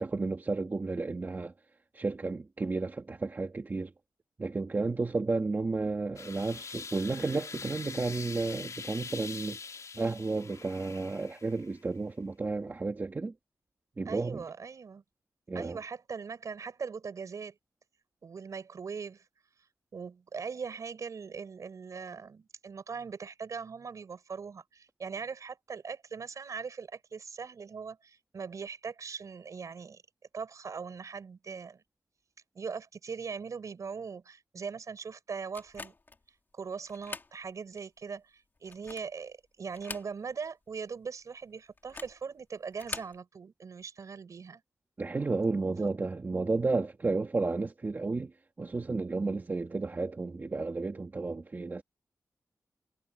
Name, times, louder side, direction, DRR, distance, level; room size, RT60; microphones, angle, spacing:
voice 1, 0.0-1.5 1.9-3.9 4.4-9.6 10.0-13.3 14.0-14.4 15.5-15.8 45.0-48.3 48.6-51.8, right 3 dB, 30° right, 2.1 m, -32 dB
sound 1, 6.2-11.8, left 5 dB, 60° left, 3.9 m, -44 dB
voice 2, 14.1-15.0 15.5-17.6 18.2-19.2 19.9-30.0 30.3-31.8 32.5-35.9 36.5-44.6, right 5 dB, 60° right, 6.9 m, -40 dB
sound 2, 35.5-36.2 36.9-37.3 37.8-37.9 38.6-39.2 39.7-40.5 40.7-40.8 41.8-42.2 42.7-43.2, left 3 dB, 35° left, 2.9 m, -43 dB
wide cardioid pair, 150°, 6 cm